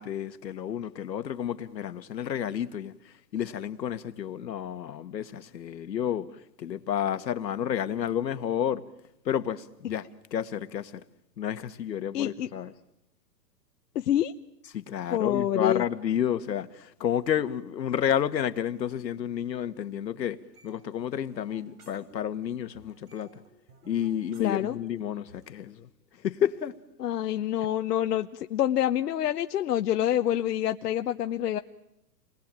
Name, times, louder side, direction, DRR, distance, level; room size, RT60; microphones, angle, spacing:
voice 1, 0.0-2.9 3.3-6.3 6.6-8.8 9.3-10.1 10.3-11.0 11.4-12.7 14.7-20.4 20.6-23.3 23.9-25.9 26.2-26.7, left 9 dB, 85° left, 1.7 m, -30 dB
voice 2, 12.1-12.5 13.9-14.3 15.1-15.8 24.4-24.8 27.0-31.6, left 11 dB, 70° left, 1.0 m, -27 dB
sound 1, 20.5-22.5 22.7-25.5, right 3 dB, 65° right, 6.9 m, -58 dB
28.5 x 20.5 x 9.0 m
hypercardioid pair, 160°, 49 cm